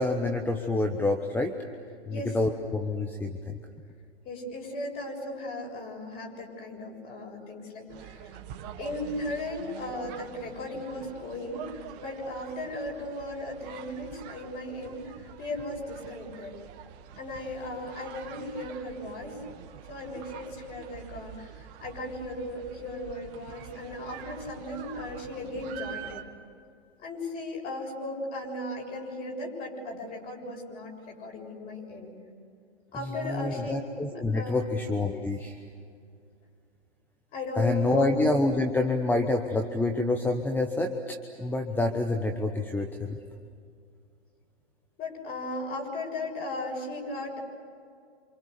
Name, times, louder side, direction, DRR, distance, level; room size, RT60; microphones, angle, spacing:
voice 1, 0.0-1.5 2.0-3.6 33.2-35.6 37.6-43.2, left 2 dB, 5° left, 4 dB, 1.1 m, -27 dB
voice 2, 2.1-2.4 4.2-8.2 8.8-15.1 15.4-16.5 17.2-19.4 19.9-26.1 27.0-32.1 32.9-33.7 34.3-34.7 37.3-38.1 45.0-47.4, left 1 dB, 25° left, 0 dB, 7.3 m, -36 dB
sound 1, 7.9-26.2, right 9 dB, 40° right, 2.1 m, -46 dB
29.0 x 27.0 x 6.9 m, 2.3 s
hypercardioid pair, 125°, 33 cm